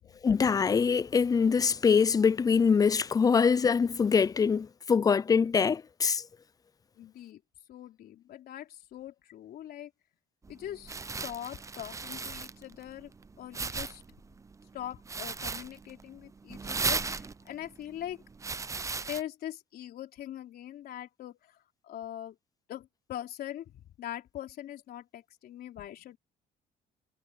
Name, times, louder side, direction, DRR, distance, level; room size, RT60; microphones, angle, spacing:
voice 1, 0.2-6.2, left 6 dB, 20° left, 0.4 m, -24 dB
voice 2, 7.0-7.4 7.7-9.9 10.5-13.1 13.4-14.0 14.7-18.2 19.1-21.4 21.9-22.3 22.7-26.2, left 12 dB, 65° left, 3.7 m, -42 dB
sound 1, 10.4-19.2, right 4 dB, 20° right, 0.6 m, -37 dB
cardioid pair, 110°, 17 cm